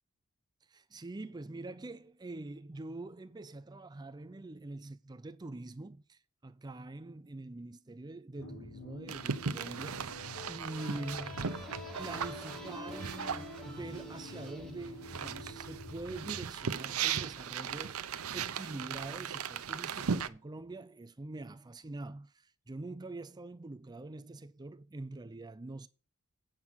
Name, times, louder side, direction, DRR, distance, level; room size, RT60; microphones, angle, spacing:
voice 1, 0.7-10.2 10.5-11.5 12.0-25.9, right 2 dB, 20° right, 0.5 m, -44 dB
sound 1, 8.4-16.4, left 2 dB, 60° left, 1.8 m, -47 dB
sound 2, 9.1-14.5 14.8-20.3, right 7 dB, 90° right, 0.7 m, -38 dB
sound 3, 10.8-16.2, equal, ahead, 2.1 m, -50 dB
9.0 x 6.2 x 5.6 m
head